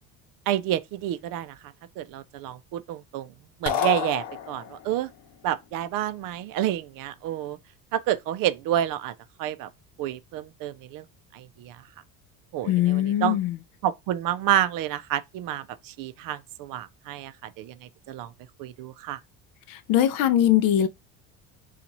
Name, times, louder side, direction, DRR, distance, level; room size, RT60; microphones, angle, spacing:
voice 1, 0.5-1.6 2.0-3.3 3.6-5.1 5.4-7.6 7.9-9.1 9.4-9.7 10.0-11.0 11.3-11.8 12.5-13.4 13.8-17.7 18.1-18.3 18.6-19.2, right 12 dB, 55° right, 0.5 m, -29 dB
sound 1, 3.7-5.0, left 10 dB, 80° left, 0.9 m, -28 dB
voice 2, 12.7-13.6 19.7-20.9, left 11 dB, 55° left, 0.5 m, -21 dB
2.9 x 2.4 x 4.0 m
cardioid pair, 135°, 40 cm